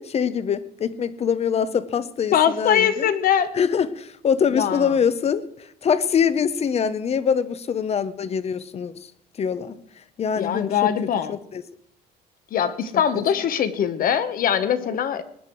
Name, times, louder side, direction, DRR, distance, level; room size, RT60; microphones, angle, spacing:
voice 1, 0.0-3.1 3.5-9.1 9.4-9.8 10.2-11.6 13.1-13.2, left 7 dB, 40° left, 16 dB, 0.8 m, -24 dB
voice 2, 2.3-3.5 4.5-4.9 10.4-11.4 12.5-15.2, left 9 dB, 55° left, 12 dB, 1.2 m, -22 dB
20.0 x 9.7 x 4.6 m, 0.74 s
cardioid pair, 110°, 17 cm